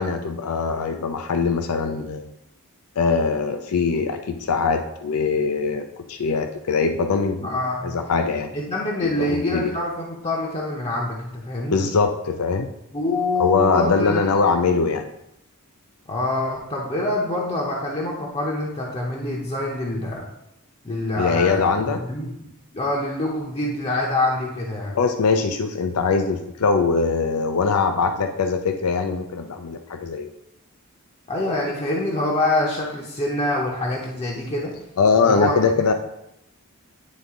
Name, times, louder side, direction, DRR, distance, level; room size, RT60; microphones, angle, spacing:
voice 1, 0.0-2.3 3.0-8.5 9.0-9.7 11.7-12.7 13.4-15.0 21.2-22.0 24.9-30.3 35.0-35.9, left 4 dB, 70° left, 7 dB, 0.5 m, -22 dB
voice 2, 7.4-7.9 8.5-11.8 12.9-14.3 16.1-20.2 20.8-22.3 22.7-25.0 31.3-34.7 35.2-35.9, left 1 dB, 30° left, -2 dB, 0.8 m, -25 dB
9.4 x 3.6 x 3.6 m, 0.84 s
head